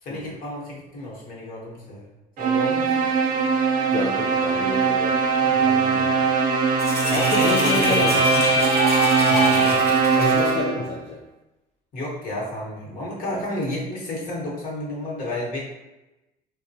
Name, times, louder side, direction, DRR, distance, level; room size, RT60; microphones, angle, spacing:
voice 1, 0.0-2.0 2.4-3.1 4.5-4.7 5.4-6.2 7.1-8.1 11.9-15.6, left 1 dB, 55° left, -5 dB, 1.2 m, -31 dB
sound 1, 2.4-10.9, right 5 dB, 55° right, 0.4 m, -21 dB
voice 2, 3.9-5.2 5.8-6.1 7.1-8.2 9.2-11.2, left 3 dB, 35° left, -2 dB, 0.4 m, -29 dB
sound 2, 6.8-9.8, left 1 dB, 85° left, 0.7 m, -24 dB
Domestic sounds home sounds, 6.8-10.5, left 1 dB, 15° left, 0.9 m, -33 dB
3.5 x 2.2 x 2.7 m, 0.99 s
cardioid pair, 110°, 17 cm